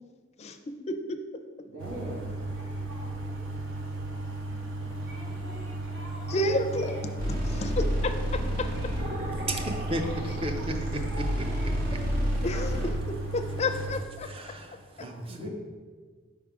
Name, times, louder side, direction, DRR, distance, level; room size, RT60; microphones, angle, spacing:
voice 1, 0.9-1.2 6.3-7.0 7.3-8.7 12.4-12.9 13.3-14.3, left 1 dB, 35° left, 6 dB, 0.4 m, -30 dB
voice 2, 1.7-3.5 4.8-6.9 7.5-7.6 8.7-9.7 10.1-10.2 10.6-12.0 12.5-12.9 15.0-15.5, right 1 dB, 70° right, -4 dB, 1.3 m, -45 dB
sound 1, 1.8-14.0, right 2 dB, 90° right, 0.8 m, -35 dB
sound 2, 7.2-12.9, equal, 50° right, 1.6 m, -31 dB
voice 3, 9.5-12.0 14.2-15.5, right 1 dB, 30° right, 5 dB, 0.5 m, -35 dB
5.6 x 3.7 x 4.7 m, 1.5 s
head